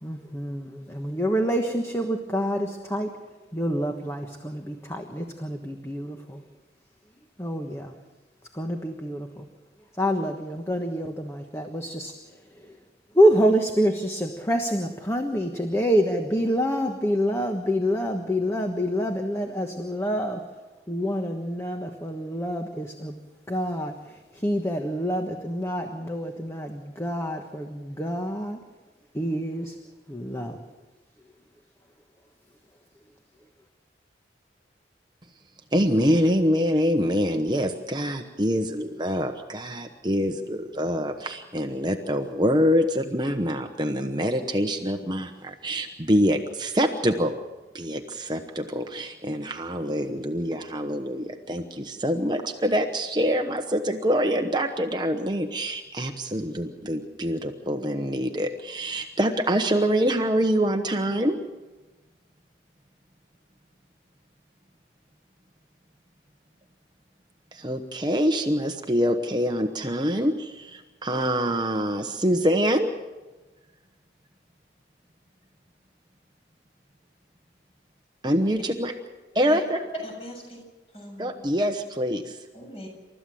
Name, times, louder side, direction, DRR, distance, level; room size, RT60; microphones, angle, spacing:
voice 1, 0.0-3.2 3.5-6.4 7.4-8.0 8.5-9.5 10.0-12.8 13.1-20.4 20.9-23.2 23.5-28.6 29.1-29.8 30.1-30.6, equal, 15° left, 4 dB, 1.3 m, -27 dB
voice 2, 35.7-47.3 47.7-61.4 67.5-72.9 78.2-78.9 79.3-79.8 81.2-82.4, equal, 25° right, 5 dB, 1.0 m, -25 dB
voice 3, 79.5-80.6 80.9-81.3 82.5-82.9, equal, 35° left, 1 dB, 7.2 m, -39 dB
29.0 x 14.0 x 7.7 m, 1.2 s
head